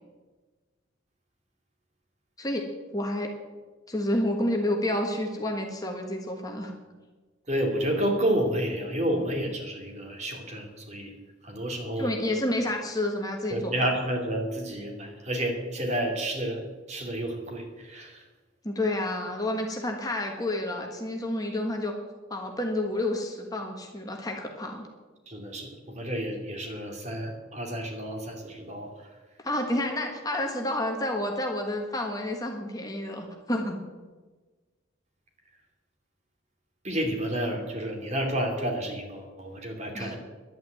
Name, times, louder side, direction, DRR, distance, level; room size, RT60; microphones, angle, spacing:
voice 1, 2.9-3.3 3.9-6.7 12.0-13.7 18.6-21.9 22.3-24.9 29.4-33.8 39.9-40.2, left 1 dB, 20° left, 2 dB, 1.5 m, -29 dB
voice 2, 7.5-11.1 11.4-12.1 13.5-18.2 25.3-29.1 36.8-40.2, right 1 dB, 35° right, 2 dB, 2.5 m, -30 dB
11.0 x 9.4 x 9.1 m, 1.3 s
head